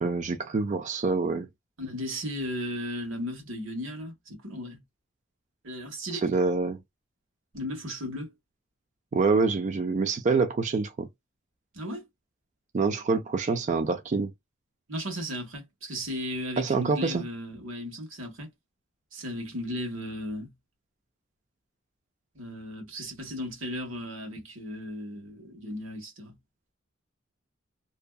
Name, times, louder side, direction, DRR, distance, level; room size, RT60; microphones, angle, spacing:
voice 1, 0.0-1.5 6.1-6.8 9.1-11.1 12.7-14.3 16.6-17.2, right 4 dB, 40° right, 0.4 m, -26 dB
voice 2, 1.8-4.8 5.6-6.2 7.5-8.3 11.7-12.0 14.9-18.5 19.1-20.5 22.3-26.3, equal, 90° right, 1.3 m, -35 dB
2.7 x 2.3 x 2.2 m
head